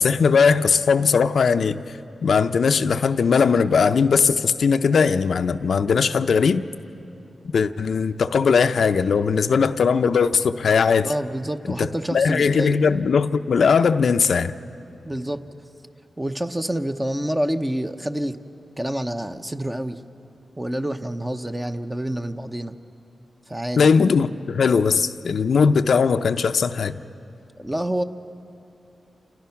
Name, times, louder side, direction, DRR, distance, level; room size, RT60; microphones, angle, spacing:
voice 1, 0.0-1.8 2.2-6.6 7.5-11.1 11.8-14.5 23.8-27.0, left 5 dB, 75° left, 0.6 m, -19 dB
voice 2, 11.0-12.8 15.0-15.4 16.2-18.4 18.8-20.0 20.6-22.8 23.5-23.9 27.6-28.0, right 1 dB, 15° right, 0.9 m, -27 dB
28.0 x 28.0 x 5.9 m
wide cardioid pair, 85°, 0 cm